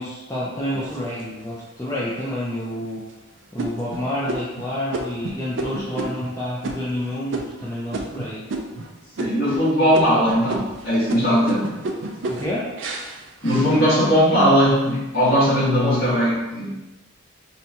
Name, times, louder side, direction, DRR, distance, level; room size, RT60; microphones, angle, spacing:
voice 1, 0.0-3.0 3.5-8.4 12.3-12.7 15.8-16.0, left 1 dB, 15° left, -8 dB, 0.4 m, -29 dB
sound 1, 0.7-1.6 2.2-2.3 2.8-3.1 3.6-8.9 9.2-9.7 9.9-14.3 14.7-15.3, right 2 dB, 60° right, 0.4 m, -31 dB
voice 2, 9.2-11.7 13.4-16.7, equal, 50° left, -8 dB, 1.4 m, -19 dB
4.1 x 2.3 x 2.7 m, 1.1 s
head